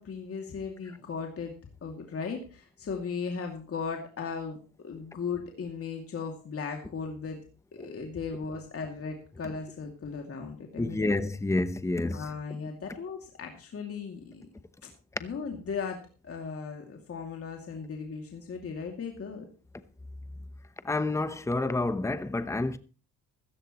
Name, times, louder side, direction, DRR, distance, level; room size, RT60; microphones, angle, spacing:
voice 1, 0.0-1.5 1.8-7.4 7.7-11.1 12.1-14.5 15.2-19.5, left 5 dB, 40° left, 2.5 m, -37 dB
voice 2, 10.8-12.6 20.8-22.8, left 2 dB, 10° left, 0.9 m, -29 dB
14.5 x 14.5 x 3.1 m
cardioid pair, 105°, 36 cm